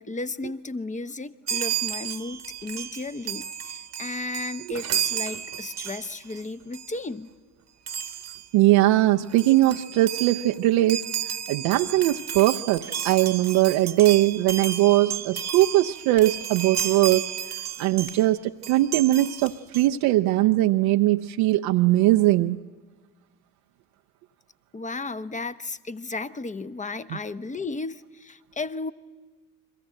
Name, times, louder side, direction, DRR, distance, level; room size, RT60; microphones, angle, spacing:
voice 1, 0.0-7.3 24.7-28.9, left 3 dB, 15° left, 13 dB, 1.0 m, -34 dB
Chime, 1.5-6.4 6.7-7.0 7.9-8.5 9.0-9.1 9.3-18.3 18.6-19.9, right 9 dB, 40° right, 1.2 m, -32 dB
voice 2, 8.5-11.0 11.5-17.3 17.8-22.6 27.1-27.2, right 16 dB, 60° right, 4 dB, 0.8 m, -20 dB
sound 1, 11.6-11.7 12.7-13.0 13.6-13.9 14.4-14.8 15.7-17.4 18.0-18.4 19.4-19.6, left 7 dB, 60° left, 3.8 m, -50 dB
29.5 x 22.5 x 7.9 m, 1.4 s
figure-of-eight pair, 55°, 43 cm